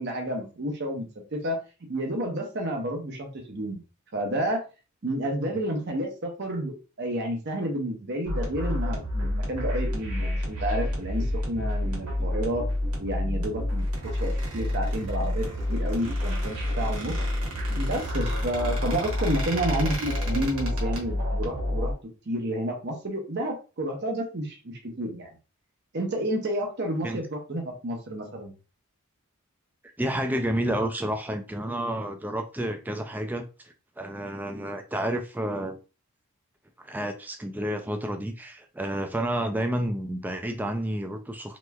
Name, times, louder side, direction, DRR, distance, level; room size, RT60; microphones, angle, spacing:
voice 1, 0.0-1.6 1.9-3.8 4.1-4.6 5.0-12.7 13.0-13.9 14.1-17.2 17.8-21.9 22.3-25.4 25.9-28.5, right 1 dB, 50° right, 0.7 m, -30 dB
sound 1, 8.3-21.9, left 1 dB, 85° right, 1.2 m, -29 dB
Squeak, 13.8-21.0, right 2 dB, 65° right, 1.2 m, -39 dB
voice 2, 30.0-35.8 36.8-41.6, right 1 dB, 10° right, 0.3 m, -30 dB
3.2 x 3.0 x 2.3 m
head